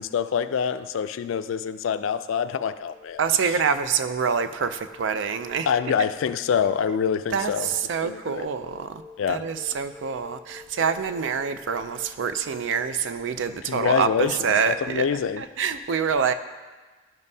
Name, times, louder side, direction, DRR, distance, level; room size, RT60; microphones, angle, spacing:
voice 1, 0.0-3.6 5.7-7.7 8.0-8.5 9.2-9.4 13.5-15.4, left 7 dB, 80° left, 12 dB, 0.3 m, -26 dB
sound 1, 2.6-13.1, left 4 dB, 10° left, 0.8 m, -49 dB
voice 2, 3.2-5.7 7.3-9.0 9.3-15.0 15.4-16.3, right 6 dB, 70° right, 10 dB, 0.4 m, -26 dB
12.0 x 5.3 x 2.7 m, 1.3 s
head